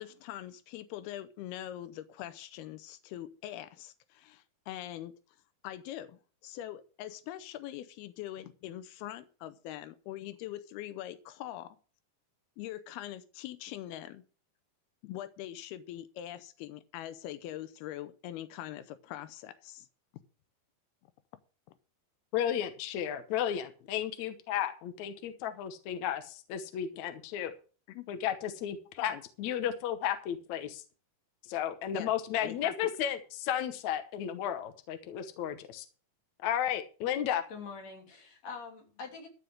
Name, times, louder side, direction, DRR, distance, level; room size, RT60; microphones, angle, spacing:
voice 1, 0.0-5.1 5.6-11.8 12.6-14.2 15.0-19.9 27.9-28.1 29.0-29.2 31.9-32.1 32.4-32.7, left 13 dB, 90° left, 2.7 m, -43 dB
voice 2, 22.3-27.5 28.1-30.8 31.4-35.9 36.4-37.4, left 10 dB, 65° left, 1.9 m, -33 dB
voice 3, 37.5-39.3, left 5 dB, 45° left, 4.1 m, -44 dB
14.0 x 5.2 x 7.8 m
omnidirectional pair, 4.4 m